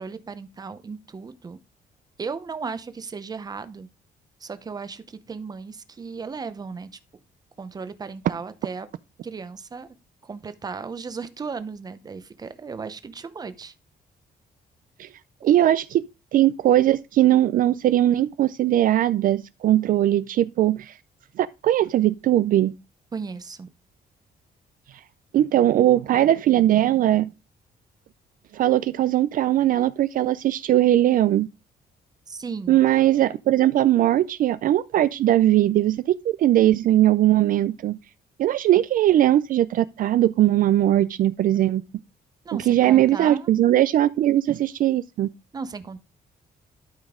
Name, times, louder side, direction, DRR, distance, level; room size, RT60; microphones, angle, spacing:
voice 1, 0.0-1.6 2.2-3.9 4.4-6.9 7.6-8.9 9.2-9.9 10.2-13.7 23.1-23.7 32.3-32.8 42.4-43.5 45.5-46.0, right 5 dB, 25° right, 0.7 m, -35 dB
voice 2, 15.4-16.1 16.3-20.9 21.4-22.7 25.3-27.3 28.5-31.5 32.7-38.0 38.4-41.8 42.7-45.3, right 13 dB, 60° right, 0.4 m, -20 dB
12.0 x 5.2 x 3.6 m
cardioid pair, 155°, 16 cm